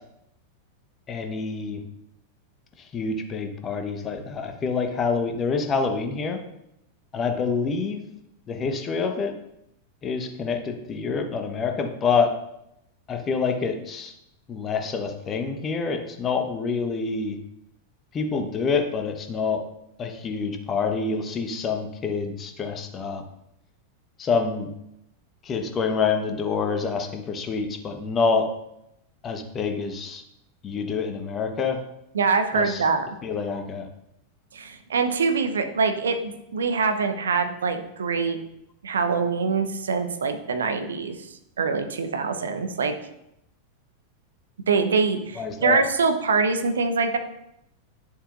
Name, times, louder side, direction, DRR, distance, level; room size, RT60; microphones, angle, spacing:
voice 1, 1.1-1.8 2.9-6.4 7.1-8.0 8.5-9.3 10.0-12.4 13.1-14.1 14.5-17.4 18.1-19.6 20.0-23.2 24.2-24.7 25.4-28.5 29.2-30.2 30.6-31.8 32.5-32.8 33.2-33.9 45.4-45.8, left 5 dB, 25° left, 5 dB, 1.1 m, -27 dB
voice 2, 32.1-33.1 34.5-38.4 38.8-41.3 41.6-43.0 44.7-47.2, right 4 dB, 70° right, 8 dB, 0.8 m, -24 dB
10.5 x 7.1 x 2.6 m, 0.82 s
figure-of-eight pair, 90°, 0 cm